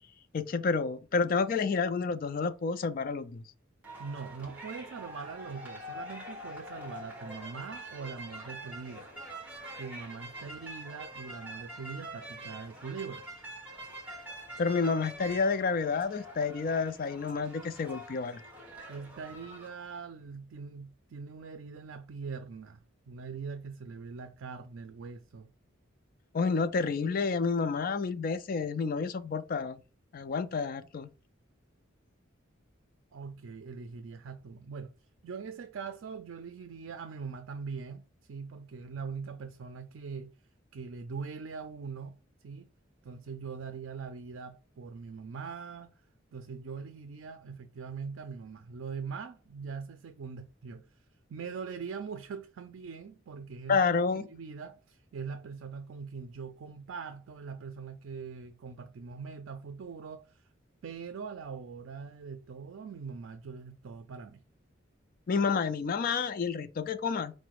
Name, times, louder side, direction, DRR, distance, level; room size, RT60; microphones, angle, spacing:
voice 1, 0.3-3.4 14.6-18.4 26.3-29.8 30.1-31.1 53.7-54.3 65.3-67.3, left 5 dB, 45° left, 0.4 m, -29 dB
sound 1, 3.8-19.7, right 1 dB, 10° right, 1.2 m, -45 dB
voice 2, 4.0-9.1 9.8-13.3 18.9-25.5 33.1-34.9 35.2-40.3 40.7-42.7 43.0-46.0 46.3-50.8 51.3-60.5 60.8-64.4, right 5 dB, 80° right, 0.4 m, -42 dB
5.0 x 2.1 x 4.6 m
head